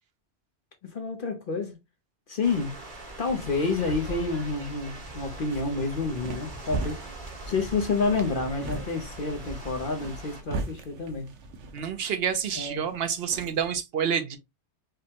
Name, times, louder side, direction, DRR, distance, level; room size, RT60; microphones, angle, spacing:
voice 1, 0.9-1.8 2.3-2.8 3.2-7.1 7.5-11.3 12.5-12.9, left 4 dB, 50° left, 0.9 m, -29 dB
sound 1, 2.4-10.4, right 1 dB, 45° right, 1.3 m, -41 dB
sound 2, 5.5-13.8, right 3 dB, 90° right, 1.1 m, -39 dB
voice 2, 11.7-14.4, right 7 dB, 65° right, 0.9 m, -28 dB
5.0 x 2.2 x 2.9 m
omnidirectional pair, 1.2 m